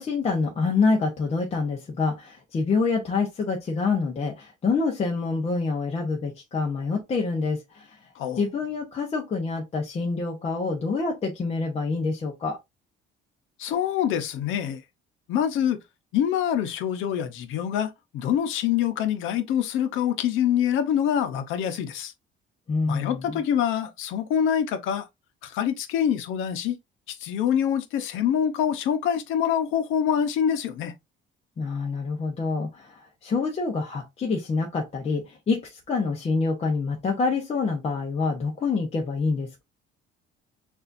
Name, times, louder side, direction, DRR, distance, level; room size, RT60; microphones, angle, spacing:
voice 1, 0.0-8.0 8.3-12.6 22.7-23.4 31.6-39.6, left 4 dB, 30° left, 0.9 m, -26 dB
voice 2, 13.6-14.8 15.3-15.8 16.1-22.1 22.9-25.0 25.4-26.8 27.2-30.9, left 9 dB, 90° left, 0.9 m, -25 dB
6.7 x 2.7 x 2.6 m
cardioid pair, 150°, 20 cm